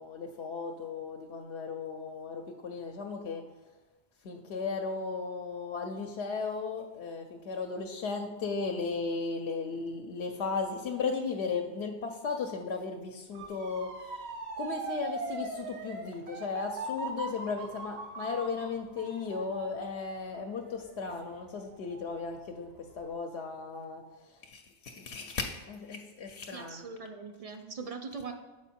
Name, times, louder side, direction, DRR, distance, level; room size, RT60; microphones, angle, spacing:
voice 1, 0.0-3.4 4.2-14.3 14.6-26.9, left 4 dB, 80° left, 3 dB, 0.8 m, -36 dB
Motor vehicle (road) / Siren, 13.3-22.3 22.7-23.1, right 3 dB, 75° right, 1.0 m, -41 dB
voice 2, 26.5-28.3, right 4 dB, 45° right, 6 dB, 0.5 m, -41 dB
6.5 x 4.5 x 4.2 m, 1.2 s
omnidirectional pair, 1.1 m